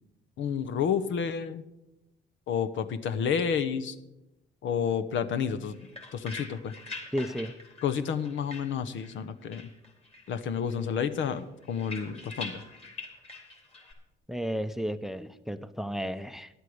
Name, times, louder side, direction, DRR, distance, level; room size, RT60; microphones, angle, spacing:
voice 1, 0.4-1.6 2.5-3.9 4.6-5.8 6.1-6.7 7.8-9.6 10.3-12.6, left 7 dB, 75° left, 11 dB, 1.0 m, -30 dB
sound 1, 5.5-9.2 9.5-10.4 10.7-13.9, left 3 dB, 30° left, 4.0 m, -44 dB
voice 2, 7.1-7.5 14.3-16.5, equal, ahead, 13 dB, 0.6 m, -33 dB
11.0 x 8.2 x 7.9 m, 0.92 s
cardioid pair, 90°, 20 cm